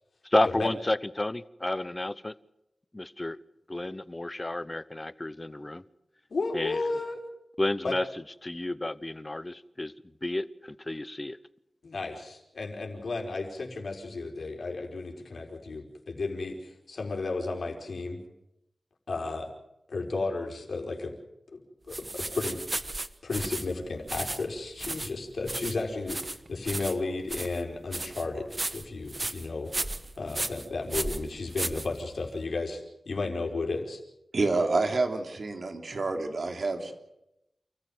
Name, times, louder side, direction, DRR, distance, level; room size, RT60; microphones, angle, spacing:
voice 1, 0.2-2.3 2.9-3.4 3.7-5.8 6.5-6.8 7.6-8.0 8.4-9.9 10.2-11.4, left 1 dB, 25° left, 16 dB, 0.9 m, -31 dB
voice 2, 6.3-7.2 7.8-7.9 11.8-18.2 19.1-19.5 19.9-21.1 21.5-21.6 21.9-22.6 23.2-28.5 28.7-29.7 30.2-34.0, left 3 dB, 75° left, 1 dB, 4.9 m, -33 dB
sound 1, 21.9-32.4, right 2 dB, 35° right, 1.2 m, -35 dB
voice 3, 34.3-36.9, right 3 dB, 65° right, 4 dB, 3.4 m, -28 dB
28.5 x 15.0 x 7.9 m, 0.85 s
wide cardioid pair, 65°, 0 cm